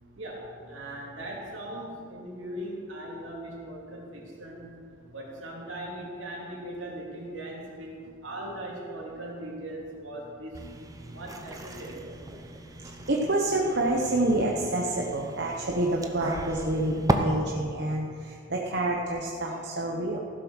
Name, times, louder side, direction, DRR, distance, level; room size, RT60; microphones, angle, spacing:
voice 1, 0.2-4.7 5.1-7.9 8.2-10.5 11.1-12.1, right 1 dB, 75° right, -3 dB, 3.1 m, -39 dB
sound 1, 10.5-17.1, right 1 dB, 15° right, 0.7 m, -36 dB
voice 2, 12.8-20.2, right 1 dB, 55° right, -1 dB, 1.0 m, -28 dB
15.5 x 7.3 x 6.4 m, 2.3 s
head